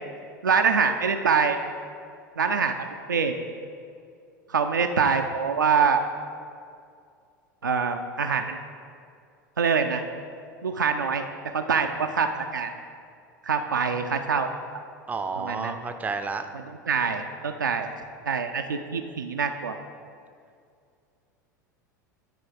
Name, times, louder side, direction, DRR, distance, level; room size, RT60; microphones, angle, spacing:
voice 1, 0.4-1.6 2.4-2.8 3.1-3.4 4.5-6.0 7.6-8.6 9.6-10.0 10.6-11.2 11.5-12.7 13.4-14.5 15.4-15.8 16.9-17.9 18.3-19.8, right 5 dB, 80° right, 4 dB, 0.4 m, -24 dB
voice 2, 15.1-16.5, right 4 dB, 15° right, 8 dB, 0.5 m, -31 dB
9.6 x 3.9 x 4.8 m, 2.3 s
figure-of-eight pair, 80°, 10 cm